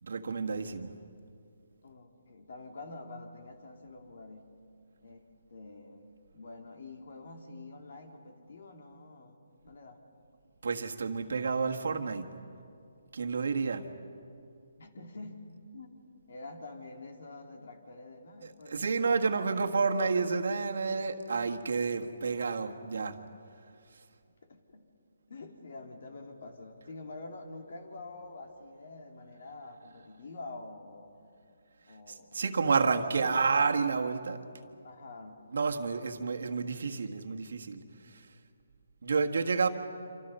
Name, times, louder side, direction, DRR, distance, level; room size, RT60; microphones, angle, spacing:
voice 1, 0.0-0.9 10.6-12.3 13.1-13.9 18.7-23.2 32.1-34.4 35.5-38.3 39.0-39.7, right 4 dB, 70° right, 5 dB, 1.6 m, -30 dB
voice 2, 1.8-4.5 5.0-9.4 9.6-10.0 14.8-15.5 15.7-16.0 16.3-19.3 24.3-24.9 25.3-31.2 31.9-32.4 32.8-33.7 34.8-35.4 36.4-36.6, left 2 dB, 65° left, 4 dB, 2.9 m, -47 dB
27.5 x 26.5 x 5.6 m, 2.5 s
hypercardioid pair, 160°, 0 cm